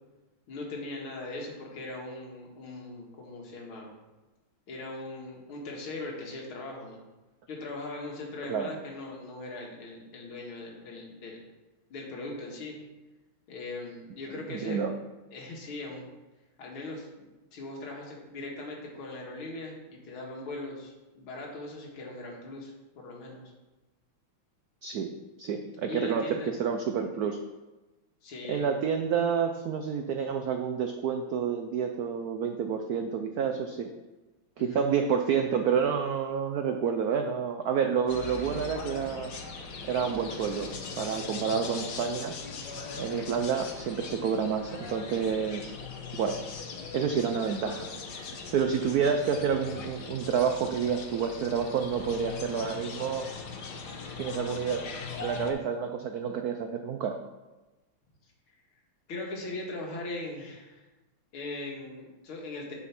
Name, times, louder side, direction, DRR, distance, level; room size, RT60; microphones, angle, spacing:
voice 1, 0.5-3.9 4.7-7.0 7.5-11.5 11.9-12.8 13.5-14.8 15.3-16.0 16.6-23.4 25.9-26.5 28.2-28.7 34.6-34.9 59.1-60.8 61.3-62.7, left 2 dB, 75° left, -2 dB, 2.5 m, -40 dB
voice 2, 14.5-14.9 24.8-25.1 25.4-27.4 28.5-33.9 34.6-39.3 39.8-42.4 43.0-45.7 46.1-46.4 46.9-48.3 48.5-53.3 54.2-54.8 55.2-57.2, right 7 dB, 80° right, 6 dB, 0.8 m, -29 dB
sound 1, 38.1-55.5, left 4 dB, 55° left, 1.5 m, -40 dB
7.8 x 6.2 x 5.9 m, 1.1 s
omnidirectional pair, 2.3 m